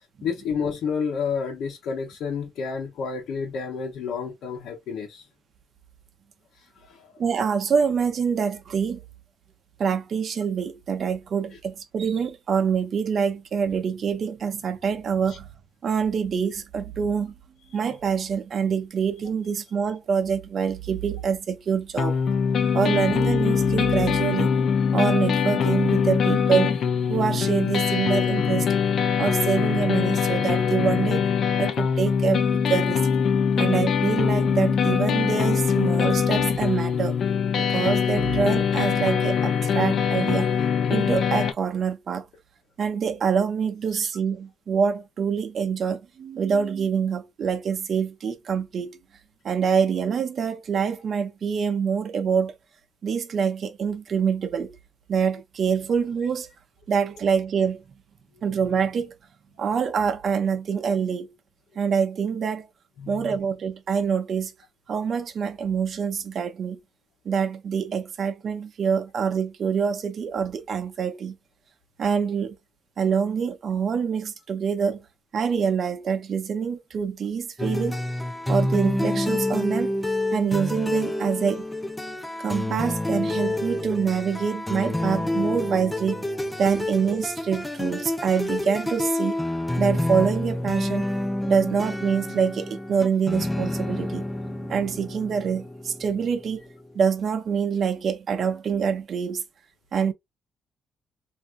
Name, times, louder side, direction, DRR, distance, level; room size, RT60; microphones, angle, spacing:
voice 1, 0.2-5.2 6.6-7.0 15.3-15.4 43.9-44.1 63.0-63.4, left 6 dB, 80° left, 1.0 m, -30 dB
voice 2, 7.2-9.0 9.8-15.5 15.8-17.3 17.7-22.2 22.7-24.6 24.9-26.8 27.1-28.7 29.2-31.3 31.6-33.1 33.6-37.2 37.6-40.5 40.9-42.2 42.8-49.0 49.4-52.5 53.0-54.8 55.1-56.5 56.9-57.8 58.4-59.1 59.6-61.3 61.8-62.7 63.1-64.5 64.9-66.8 67.2-71.4 72.0-72.5 73.0-75.0 75.3-78.0 78.5-79.9 80.3-81.7 82.4-86.3 86.6-89.4 89.8-91.1 91.5-96.6 96.9-99.4 99.9-100.1, right 6 dB, 55° right, 0.7 m, -25 dB
sound 1, 22.0-41.5, left 7 dB, 60° left, 0.6 m, -23 dB
sound 2, 77.6-97.0, left 1 dB, 10° left, 0.6 m, -28 dB
3.3 x 2.8 x 2.5 m
cardioid pair, 90°, 0 cm